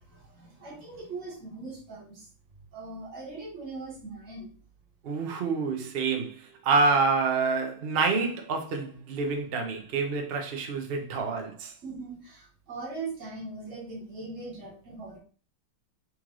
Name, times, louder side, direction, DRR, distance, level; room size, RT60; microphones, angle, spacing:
voice 1, 0.1-2.3 2.7-4.5 11.8-15.2, right 3 dB, 40° right, 1.6 m, -40 dB
voice 2, 5.0-11.7, right 4 dB, 80° right, 0.5 m, -27 dB
4.2 x 3.1 x 3.7 m
omnidirectional pair, 2.2 m